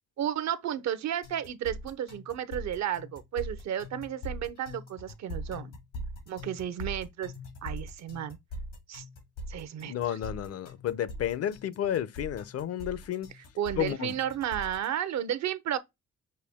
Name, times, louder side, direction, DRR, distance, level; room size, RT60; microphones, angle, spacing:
voice 1, 0.2-5.8 6.3-7.3 7.6-8.4 8.9-9.0 9.5-10.2 13.6-15.8, right 10 dB, 65° right, 0.7 m, -33 dB
sound 1, 1.2-14.9, equal, 90° left, 1.9 m, -41 dB
voice 2, 9.8-13.3 13.8-14.1, left 10 dB, 55° left, 0.6 m, -31 dB
6.5 x 2.2 x 3.5 m
cardioid pair, 90°, 30 cm